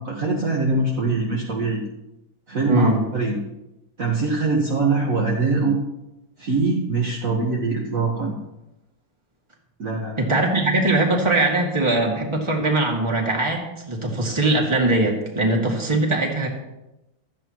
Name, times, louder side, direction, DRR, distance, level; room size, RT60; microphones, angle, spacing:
voice 1, 0.0-1.8 2.5-3.4 4.0-5.8 6.4-8.3 9.8-10.4, right 3 dB, 45° right, -2 dB, 1.7 m, -23 dB
voice 2, 2.7-3.0 10.2-16.5, right 2 dB, 15° right, -1 dB, 2.2 m, -21 dB
16.0 x 13.5 x 3.0 m, 0.97 s
omnidirectional pair, 2.2 m